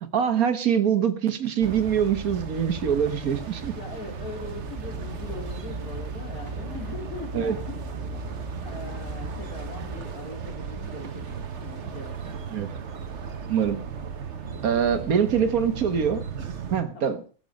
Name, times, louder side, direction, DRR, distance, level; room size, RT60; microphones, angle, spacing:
voice 1, 0.1-3.7 7.3-7.6 12.5-12.7 13.5-13.8 14.6-16.2 16.7-17.2, right 8 dB, 75° right, 11 dB, 1.7 m, -24 dB
sound 1, 1.6-16.8, right 6 dB, 50° right, 1.4 m, -36 dB
voice 2, 3.7-7.8 8.1-8.3 8.6-12.4 13.1-13.3 14.4-15.1 16.9-17.2, left 3 dB, 80° left, -2 dB, 3.0 m, -41 dB
sound 2, 4.6-10.0, right 1 dB, 35° right, 3.1 m, -38 dB
19.5 x 7.0 x 5.2 m, 0.41 s
omnidirectional pair, 1.6 m